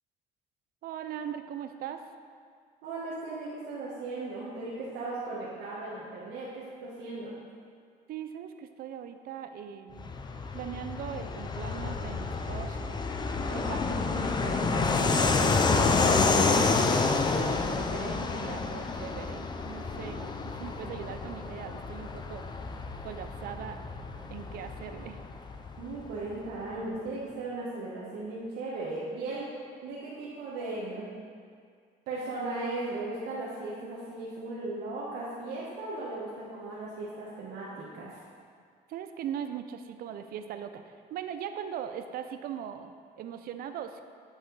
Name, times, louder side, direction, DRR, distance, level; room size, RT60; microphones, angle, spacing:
voice 1, 0.8-2.1 8.1-10.1 10.5-13.0 13.5-22.5 23.0-23.8 24.3-25.2 38.9-44.0, right 9 dB, 60° right, 8 dB, 0.5 m, -40 dB
voice 2, 2.8-7.4 19.9-20.3 25.8-29.5 29.8-31.1 32.1-38.2, right 2 dB, 80° right, -6 dB, 1.2 m, -37 dB
Fixed-wing aircraft airplane, 10.0-26.2, left 4 dB, 25° left, 0.5 m, -29 dB
8.4 x 5.1 x 3.9 m, 2.2 s
cardioid pair, 110°, 17 cm